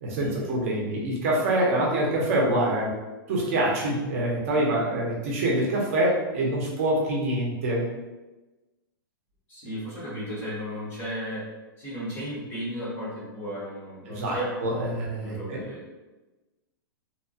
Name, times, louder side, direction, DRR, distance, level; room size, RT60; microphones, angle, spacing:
voice 1, 0.0-2.9 3.3-7.9 14.1-15.6, right 1 dB, 40° right, -3 dB, 0.6 m, -25 dB
voice 2, 9.5-11.4 11.8-14.9 15.2-15.8, equal, 15° left, -6 dB, 0.6 m, -34 dB
2.8 x 2.1 x 2.6 m, 1.1 s
supercardioid pair, 175°, 12 cm